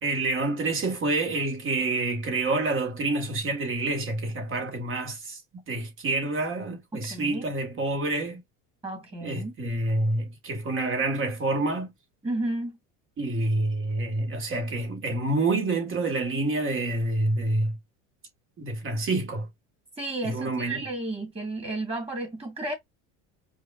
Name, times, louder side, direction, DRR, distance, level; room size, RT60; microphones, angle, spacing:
voice 1, 0.0-5.4 5.7-8.4 9.2-11.9 13.2-17.8 18.6-19.5 20.2-20.9, right 2 dB, 35° right, 1.8 m, -27 dB
voice 2, 6.9-7.4 8.8-9.5 12.2-12.8 20.0-22.7, right 2 dB, 15° right, 2.3 m, -32 dB
5.0 x 2.5 x 2.6 m
cardioid pair, 125°, 34 cm